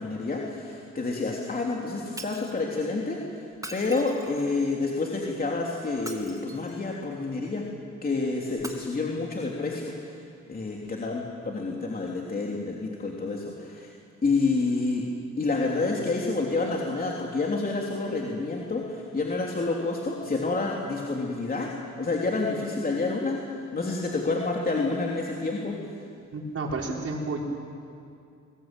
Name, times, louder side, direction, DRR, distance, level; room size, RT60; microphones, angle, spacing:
voice 1, 0.0-3.4 3.7-7.6 8.0-10.2 10.4-13.9 14.2-15.1 15.4-25.8, left 3 dB, 30° left, -1 dB, 3.2 m, -29 dB
Shatter, 2.2-2.6 3.5-4.6 5.9-6.8 8.5-8.7, right 1 dB, 10° right, 2.6 m, -41 dB
voice 2, 26.3-27.4, right 3 dB, 50° right, -1 dB, 5.3 m, -31 dB
22.5 x 20.0 x 9.1 m, 2.5 s
cardioid pair, 90°, 30 cm